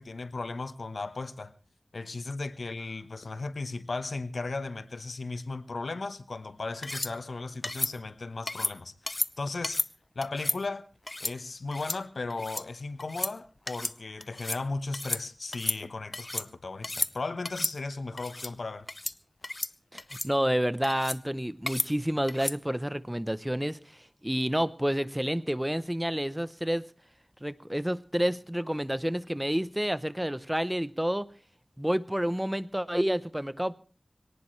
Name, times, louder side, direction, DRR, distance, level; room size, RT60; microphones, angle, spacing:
voice 1, 0.0-1.5 1.9-8.9 9.4-9.8 10.1-10.8 11.2-18.9, left 3 dB, 85° left, 1.1 m, -36 dB
sound 1, 6.8-7.1 7.6-7.9 8.5-8.7 9.1-9.3 9.6-9.9 10.2-10.6 11.1-11.3 11.7-12.0 12.3-12.6 13.0-13.3 13.7-13.9 14.2-14.6 14.9-15.2 15.5-16.5 16.8-17.1 17.4-17.7 18.2-18.5 18.9-19.1 19.4-19.7 20.0-20.3 20.8-21.2 21.7-21.9 22.3-22.6, left 2 dB, 40° left, 0.7 m, -32 dB
voice 2, 19.9-23.8 24.2-26.8 27.4-31.3 31.8-33.7, equal, 10° right, 0.8 m, -29 dB
23.0 x 18.0 x 3.2 m
wide cardioid pair, 70°, 0 cm